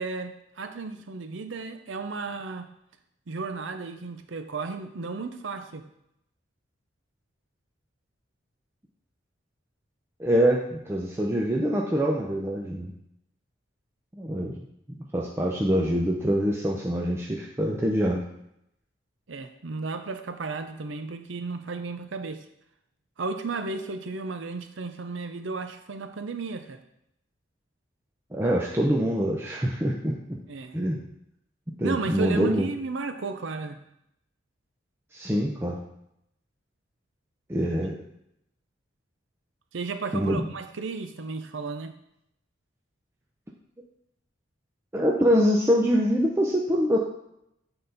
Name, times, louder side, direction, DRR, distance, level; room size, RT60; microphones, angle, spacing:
voice 1, 0.0-2.7 3.3-5.8 19.3-22.4 23.2-26.8 30.5-30.8 31.8-33.8 39.7-42.0, right 4 dB, 70° right, 8 dB, 0.6 m, -34 dB
voice 2, 10.2-12.9 14.1-14.6 15.1-18.2 28.3-30.4 30.7-31.0 31.8-32.7 35.1-35.8 37.5-37.9 40.1-40.5 44.9-47.0, equal, 15° right, -2 dB, 0.6 m, -24 dB
8.9 x 3.9 x 4.0 m, 0.79 s
head